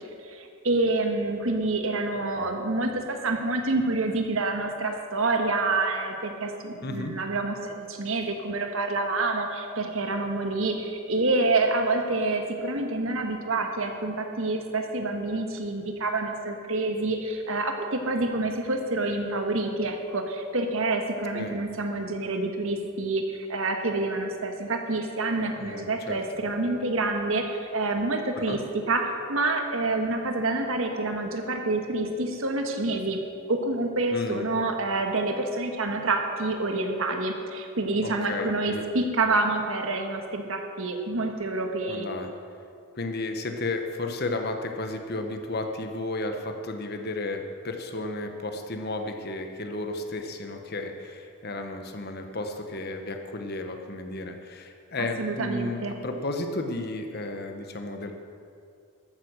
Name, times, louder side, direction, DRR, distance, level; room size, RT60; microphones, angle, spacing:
voice 1, 0.2-28.6 28.9-29.0 29.3-33.2 33.5-42.1 55.0-55.9, right 2 dB, 65° right, 4 dB, 1.4 m, -27 dB
voice 2, 6.8-7.1 21.3-21.6 25.6-26.2 28.3-28.6 34.1-34.4 38.0-38.8 41.9-42.3 43.0-58.1, left 2 dB, 45° left, 5 dB, 1.1 m, -33 dB
14.0 x 9.2 x 6.5 m, 2.4 s
head